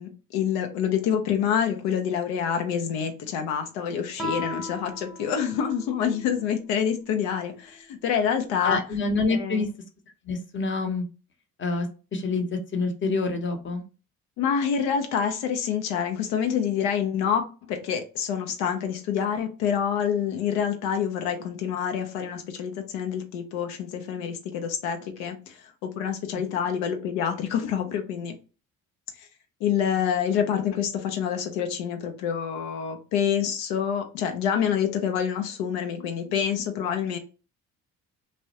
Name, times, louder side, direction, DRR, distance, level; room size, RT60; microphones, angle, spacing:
voice 1, 0.0-8.8 9.3-9.7 14.4-28.4 29.1-29.3 29.6-37.2, left 8 dB, 90° left, 5 dB, 0.5 m, -27 dB
Guitar, 4.2-6.6, left 1 dB, ahead, 0.9 m, -36 dB
voice 2, 8.6-9.7 10.2-11.0 11.6-11.9 12.1-13.8, left 3 dB, 30° left, 5 dB, 0.7 m, -26 dB
2.3 x 2.0 x 2.7 m, 0.34 s
supercardioid pair, 65°, 37 cm